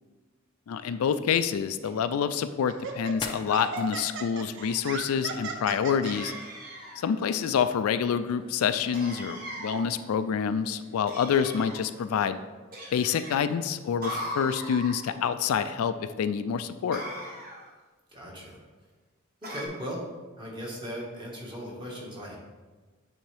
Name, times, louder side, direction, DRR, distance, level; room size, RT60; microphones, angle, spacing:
voice 1, 0.7-6.3 7.0-12.4 12.9-17.0, left 7 dB, 85° left, 11 dB, 0.3 m, -27 dB
sound 1, 1.5-12.5, left 4 dB, 20° left, 0.5 m, -49 dB
Laughter, 1.8-2.0 2.7-6.3, right 4 dB, 60° right, 0.6 m, -37 dB
sound 2, 6.0-7.1 8.9-9.9 11.1-11.8 12.7-13.4 14.0-15.0 16.9-17.7 19.4-19.7, equal, 45° right, 1.1 m, -38 dB
voice 2, 18.1-18.6 19.4-20.1 20.4-22.4, equal, 25° right, -3 dB, 1.5 m, -38 dB
8.9 x 3.5 x 3.4 m, 1.3 s
head